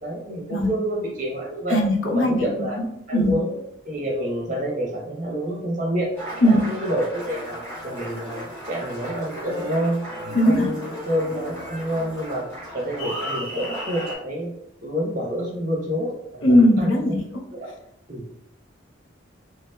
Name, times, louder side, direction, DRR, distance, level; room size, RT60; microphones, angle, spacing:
voice 1, 0.0-1.8 2.1-2.8 3.1-3.5 3.8-6.1 6.4-7.6 7.8-10.0 10.4-12.5 12.7-14.5 14.8-17.0 17.5-17.7 18.1-18.3, equal, 40° right, -2 dB, 0.9 m, -28 dB
voice 2, 1.7-2.5 2.8-2.9 3.1-3.4 6.4-6.6 10.3-10.7 16.4-17.2, left 1 dB, 85° left, 1 dB, 0.7 m, -18 dB
Applause, 6.1-14.2, equal, 15° left, 1.2 m, -35 dB
3.4 x 2.9 x 2.2 m, 0.75 s
head